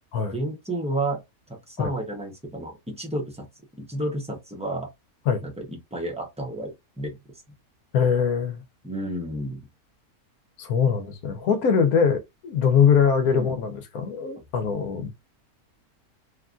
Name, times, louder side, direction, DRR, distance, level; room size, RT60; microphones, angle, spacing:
voice 1, 0.3-1.2 1.5-3.5 3.7-4.9 5.4-7.2 8.8-9.7 13.2-13.6, right 1 dB, 5° right, 0.5 m, -31 dB
voice 2, 7.9-8.6 10.6-15.1, left 6 dB, 85° left, 1.2 m, -22 dB
3.2 x 2.4 x 2.4 m
omnidirectional pair, 1.5 m